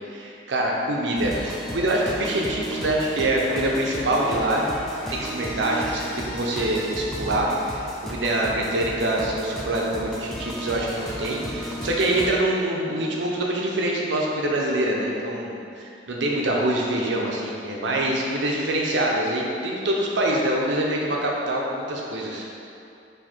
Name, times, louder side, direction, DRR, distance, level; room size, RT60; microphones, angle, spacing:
voice 1, 0.1-4.7 5.1-15.6 16.1-22.4, right 1 dB, 80° right, -2 dB, 0.7 m, -25 dB
sound 1, 1.2-12.3, equal, ahead, 0.4 m, -34 dB
4.6 x 2.6 x 4.3 m, 2.6 s
head